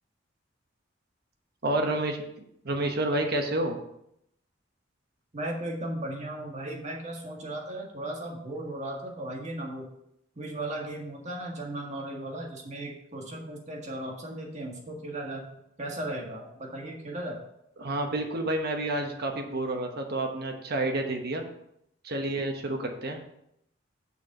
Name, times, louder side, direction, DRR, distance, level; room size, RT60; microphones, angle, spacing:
voice 1, 1.6-2.2 2.6-3.8 17.8-21.4 22.0-23.2, right 1 dB, 55° right, 3 dB, 1.1 m, -29 dB
voice 2, 5.3-9.9 10.4-15.5 15.8-17.4, right 1 dB, 40° right, 0 dB, 1.7 m, -36 dB
6.9 x 4.7 x 6.5 m, 0.77 s
head